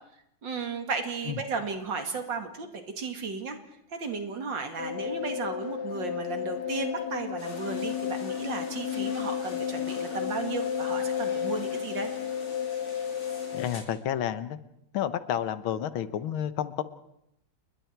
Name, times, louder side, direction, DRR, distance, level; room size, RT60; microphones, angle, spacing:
voice 1, 0.4-2.7 3.0-3.6 4.0-12.1, right 4 dB, 65° right, 6 dB, 3.0 m, -34 dB
sound 1, 4.8-13.7, left 8 dB, 55° left, 1.9 m, -32 dB
sound 2, 7.4-13.8, left 1 dB, 35° left, 4.6 m, -47 dB
voice 2, 13.5-14.6 14.9-16.8, left 10 dB, 85° left, 13 dB, 1.9 m, -30 dB
29.5 x 21.0 x 4.6 m, 0.78 s
omnidirectional pair, 2.2 m